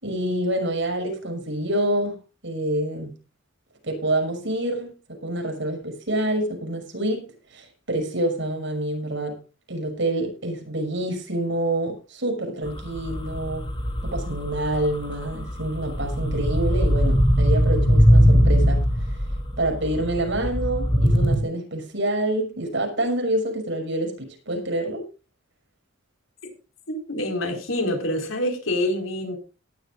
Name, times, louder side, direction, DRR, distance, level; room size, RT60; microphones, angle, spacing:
voice 1, 0.0-2.2 2.4-3.2 3.8-7.3 7.5-9.4 9.7-13.7 14.0-18.9 19.6-25.0, right 1 dB, 65° right, 6.2 m, -27 dB
sound 1, 12.7-21.4, equal, 25° left, 3.2 m, -21 dB
voice 2, 26.9-29.4, left 1 dB, 80° left, 4.5 m, -26 dB
18.5 x 12.0 x 2.5 m
head